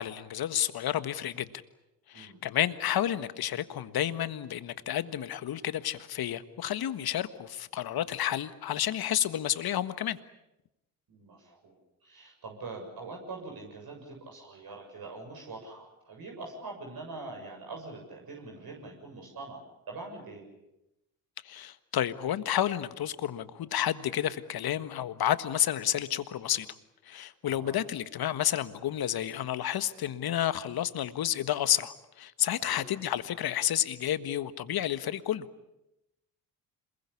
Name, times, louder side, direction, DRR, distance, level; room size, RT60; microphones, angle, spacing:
voice 1, 0.0-1.5 2.1-10.2 21.5-26.7 27.1-35.4, left 11 dB, 55° left, 13 dB, 1.6 m, -30 dB
voice 2, 11.1-20.4 27.4-27.8 32.6-32.8, right 3 dB, 50° right, 1 dB, 7.3 m, -44 dB
27.0 x 21.5 x 8.6 m, 0.92 s
hypercardioid pair, 50°, 45 cm